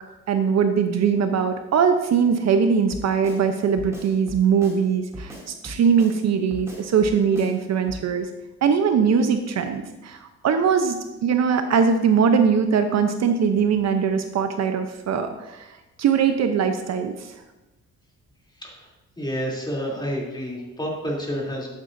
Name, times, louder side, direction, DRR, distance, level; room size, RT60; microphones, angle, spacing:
voice 1, 0.3-8.3 8.6-15.7 16.0-17.3, right 6 dB, 60° right, 7 dB, 0.8 m, -21 dB
Drum kit, 2.9-3.4 3.8-4.8 5.1-6.2 6.5-7.6 7.9-8.1, equal, 10° right, 2.6 m, -39 dB
voice 2, 19.2-21.7, equal, 15° left, -3 dB, 3.1 m, -29 dB
12.0 x 8.1 x 2.7 m, 1.0 s
cardioid pair, 90°, 30 cm